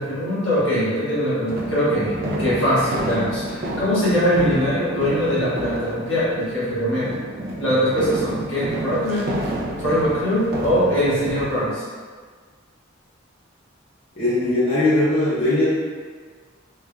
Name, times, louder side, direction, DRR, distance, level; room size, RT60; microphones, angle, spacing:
voice 1, 0.0-2.1 2.4-7.1 7.6-9.3 9.8-11.8, equal, 65° left, -10 dB, 1.4 m, -22 dB
sound 1, 1.5-11.7, right 1 dB, 50° right, 0.4 m, -30 dB
voice 2, 14.2-15.6, left 2 dB, 35° left, -12 dB, 0.8 m, -19 dB
3.5 x 3.2 x 2.2 m, 1.5 s
head